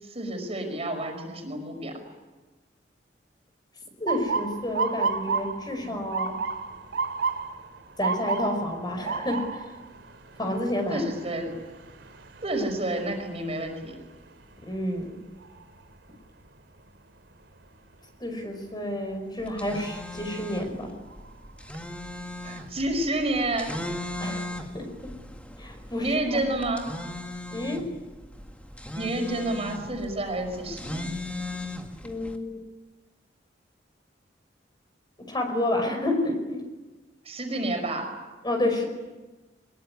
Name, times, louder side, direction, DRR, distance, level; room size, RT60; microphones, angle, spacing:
voice 1, 0.0-2.0 5.8-6.0 10.9-11.6 12.4-14.0 22.4-23.8 26.0-26.9 28.9-31.1 37.3-38.1, right 1 dB, 35° right, 4 dB, 5.5 m, -29 dB
voice 2, 4.0-6.4 8.0-9.7 10.4-11.0 14.6-15.2 18.2-20.9 24.2-24.5 24.7-25.1 25.6-26.4 27.5-27.9 32.0-32.6 35.2-36.6 38.4-38.8, left 1 dB, 25° left, 5 dB, 5.2 m, -30 dB
Motor vehicle (road) / Siren, 4.1-16.0 16.4-16.9 17.6-17.9 19.8-20.1 20.6-20.7 21.1-21.8, right 5 dB, 90° right, 3.0 m, -33 dB
sound 1, 19.4-32.4, left 1 dB, 10° left, 2.1 m, -38 dB
23.5 x 22.0 x 9.8 m, 1.2 s
head